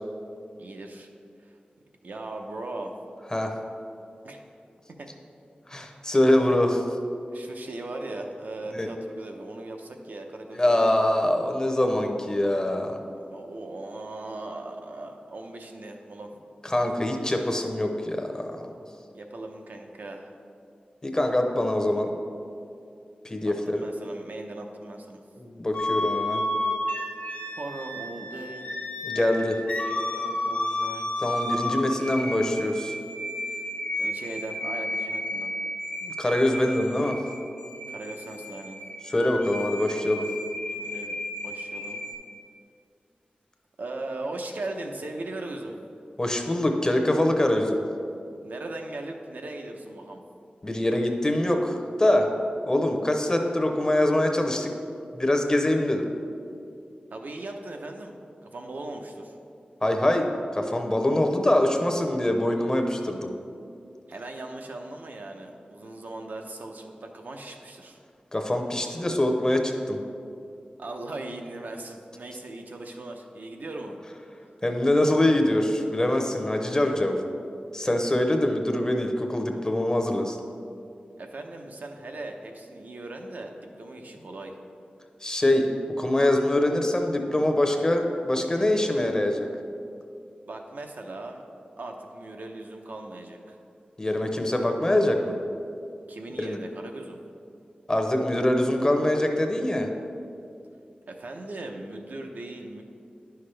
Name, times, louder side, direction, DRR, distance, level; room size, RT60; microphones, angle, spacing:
voice 1, 0.6-1.1 1.4-1.5 2.0-3.0 4.2-4.4 5.0-5.1 7.3-10.9 13.1-16.3 19.1-20.3 23.5-25.2 27.5-28.6 29.9-31.1 33.5-33.6 34.0-35.5 37.9-38.8 40.7-42.0 43.8-45.8 48.4-50.2 57.1-59.3 64.1-68.0 70.8-74.0 81.2-84.5 90.5-91.4 91.8-93.6 96.1-97.2 101.1-102.8, right 2 dB, 70° right, 3 dB, 0.7 m, -38 dB
voice 2, 5.7-7.0 8.7-8.9 10.5-12.9 16.6-18.6 21.0-22.1 23.2-23.8 25.4-26.4 29.0-29.6 31.2-32.9 36.0-37.2 39.1-40.3 46.2-47.8 50.6-52.3 52.7-54.7 55.1-56.1 59.8-60.3 60.5-63.3 68.3-70.0 74.6-77.2 77.7-80.4 85.2-85.7 86.0-89.5 94.0-95.3 96.4-96.6 97.9-99.9, left 1 dB, 25° left, 4 dB, 0.7 m, -24 dB
sound 1, 25.7-42.1, left 1 dB, 60° left, 1.2 m, -32 dB
10.0 x 5.8 x 3.3 m, 2.5 s
wide cardioid pair, 95°, 3 cm